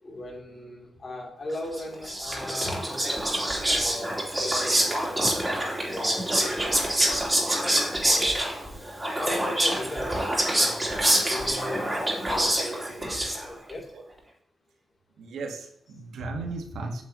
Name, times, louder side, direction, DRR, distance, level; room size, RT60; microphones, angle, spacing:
voice 1, 0.0-4.8 5.1-6.7 7.8-8.4 9.2-10.1 10.5-13.8, left 1 dB, 50° left, -1 dB, 3.1 m, -38 dB
Whispering, 1.7-13.7, right 1 dB, 15° right, 3.2 m, -26 dB
voice 2, 15.2-17.0, right 3 dB, 80° right, 4 dB, 1.4 m, -36 dB
8.6 x 6.7 x 3.0 m, 0.72 s
supercardioid pair, 50°, 0 cm